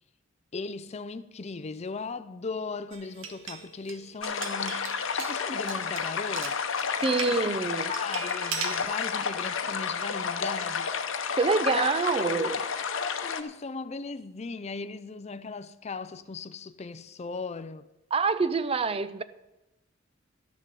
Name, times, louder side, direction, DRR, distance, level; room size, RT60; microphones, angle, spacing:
voice 1, 0.5-6.9 7.3-11.0 11.7-11.9 12.3-12.5 12.9-17.9, left 4 dB, 30° left, 0.4 m, -38 dB
sound 1, 2.9-7.3 7.9-8.8, right 6 dB, 70° right, 1.4 m, -39 dB
sound 2, 4.2-13.4, left 6 dB, 65° left, 0.9 m, -31 dB
voice 2, 7.0-7.9 11.4-12.6 18.1-19.2, right 4 dB, 30° right, 0.5 m, -26 dB
12.5 x 6.7 x 7.5 m
head